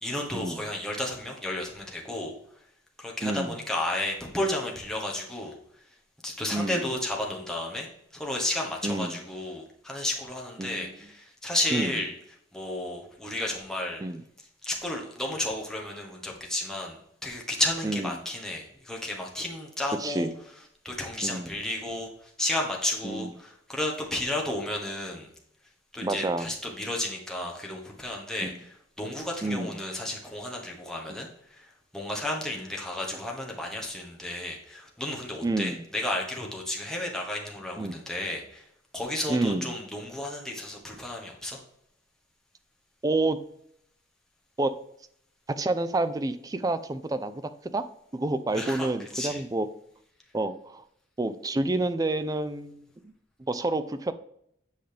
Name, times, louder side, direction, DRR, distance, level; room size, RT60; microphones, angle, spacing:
voice 1, 0.0-2.3 3.0-5.6 6.2-12.1 12.5-14.0 14.6-20.3 20.8-25.3 25.9-28.7 29.0-38.6 38.9-41.6 48.5-49.4, left 1 dB, 5° left, -1 dB, 1.2 m, -32 dB
voice 2, 3.2-3.6 6.5-6.8 8.8-9.2 10.6-11.0 11.7-11.9 14.0-14.2 17.8-18.2 20.0-20.4 21.2-21.6 23.0-23.3 26.0-26.5 29.4-29.8 31.1-31.2 35.4-35.8 37.8-38.0 39.3-39.7 43.0-43.4 44.6-44.7 45.5-47.4 47.7-47.8 48.1-49.7 50.3-50.8 51.2-53.1 53.5-54.1, right 2 dB, 20° right, 11 dB, 0.4 m, -29 dB
8.0 x 5.0 x 3.4 m, 0.72 s
head